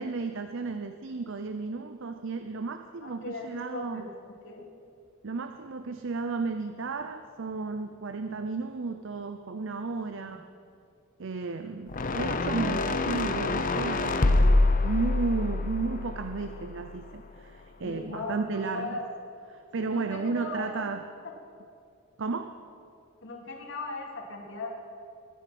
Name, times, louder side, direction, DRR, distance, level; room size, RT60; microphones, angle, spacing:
voice 1, 0.0-4.0 5.2-10.4 11.2-19.0 19.5-21.0 22.2-22.6, right 4 dB, 65° right, 8 dB, 0.7 m, -33 dB
voice 2, 3.0-4.1 4.4-4.7 10.2-10.4 12.8-12.9 17.8-19.0 19.8-20.7 23.2-24.7, left 2 dB, 65° left, 0 dB, 2.7 m, -38 dB
sound 1, 11.9-17.2, left 2 dB, 40° left, 0.8 m, -26 dB
22.0 x 9.9 x 6.1 m, 2.4 s
head